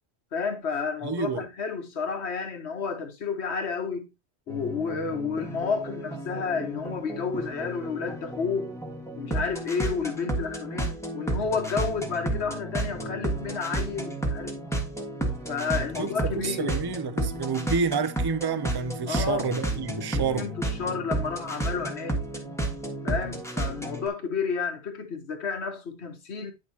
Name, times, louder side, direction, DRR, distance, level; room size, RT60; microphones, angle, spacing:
voice 1, 0.3-4.1 4.5-8.7 9.1-14.6 15.5-16.8 19.1-19.5 20.1-22.2 23.0-26.5, left 5 dB, 70° left, 1.4 m, -31 dB
voice 2, 1.0-1.4 16.0-20.5, right 5 dB, 30° right, 0.5 m, -29 dB
sound 1, 4.5-24.1, right 2 dB, ahead, 1.5 m, -32 dB
9.6 x 6.3 x 2.8 m
omnidirectional pair, 1.2 m